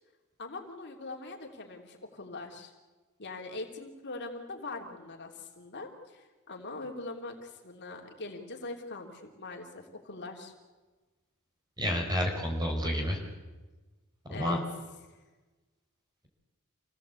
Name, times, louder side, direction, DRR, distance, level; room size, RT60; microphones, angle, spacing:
voice 1, 0.4-2.7 3.2-10.5 14.3-14.6 15.1-15.2, left 3 dB, 55° left, 2 dB, 3.2 m, -42 dB
voice 2, 11.8-13.2 14.3-14.6, equal, 20° right, 2 dB, 5.1 m, -29 dB
27.5 x 18.0 x 8.4 m, 1.2 s
head